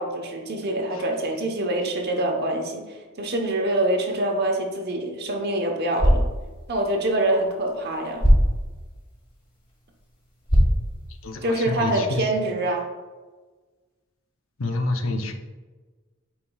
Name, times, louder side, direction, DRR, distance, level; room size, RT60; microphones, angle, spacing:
voice 1, 0.0-6.3 6.7-8.3 11.4-12.9, right 1 dB, 50° right, 2 dB, 1.0 m, -25 dB
sound 1, 5.8-11.8, equal, 25° left, 1.6 m, -25 dB
voice 2, 11.2-12.2 14.6-15.3, left 2 dB, 75° left, 6 dB, 0.7 m, -27 dB
8.8 x 4.7 x 2.3 m, 1.3 s
head